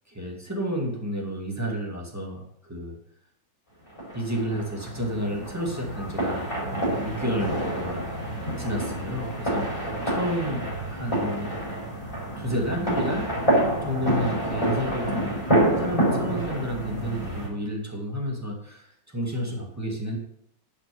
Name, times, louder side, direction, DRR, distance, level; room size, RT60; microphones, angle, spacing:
voice 1, 0.1-2.9 4.1-8.1 8.6-11.5 12.4-13.3 13.9-15.3 15.8-20.2, equal, 10° right, -1 dB, 2.1 m, -31 dB
sound 1, 4.0-17.5, right 1 dB, 15° left, 4.5 m, -27 dB
10.5 x 6.4 x 5.3 m, 0.71 s
omnidirectional pair, 2.0 m